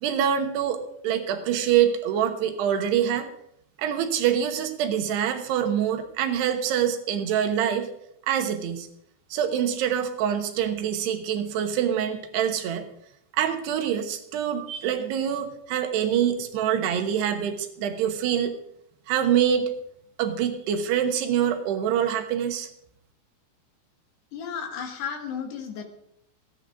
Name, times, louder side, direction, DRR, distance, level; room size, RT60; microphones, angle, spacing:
voice 1, 0.0-3.3 3.8-7.9 8.3-8.9 9.3-12.9 13.3-18.5 19.1-19.7 20.2-22.7, right 9 dB, 85° right, 6 dB, 3.2 m, -25 dB
voice 2, 24.3-25.9, left 7 dB, 75° left, 3 dB, 3.6 m, -33 dB
28.5 x 9.8 x 2.5 m, 0.74 s
omnidirectional pair, 4.7 m